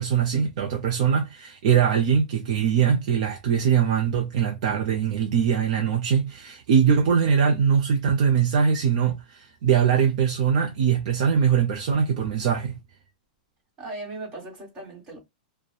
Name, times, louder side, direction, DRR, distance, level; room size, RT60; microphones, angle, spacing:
voice 1, 0.0-12.8, right 7 dB, 50° right, 0.6 m, -22 dB
voice 2, 13.8-15.2, right 2 dB, 20° right, 1.4 m, -37 dB
2.8 x 2.2 x 2.3 m
supercardioid pair, 170°, 5 cm